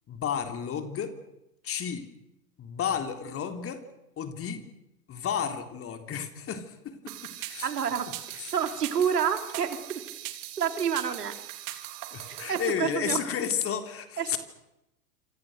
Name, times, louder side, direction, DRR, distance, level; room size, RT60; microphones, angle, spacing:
voice 1, 0.1-1.2 1.6-2.1 2.6-3.8 4.2-4.7 5.1-7.1 7.4-7.7 8.3-8.5 12.1-14.4, left 8 dB, 30° left, 7 dB, 3.5 m, -32 dB
sound 1, 7.1-12.7, right 15 dB, 45° right, 3.4 m, -40 dB
voice 2, 7.6-9.8 10.6-11.3 11.7-11.8 12.3-13.2 14.2-14.4, right 8 dB, 80° right, 7 dB, 3.6 m, -29 dB
28.5 x 26.5 x 6.6 m, 0.89 s
hypercardioid pair, 100°, 47 cm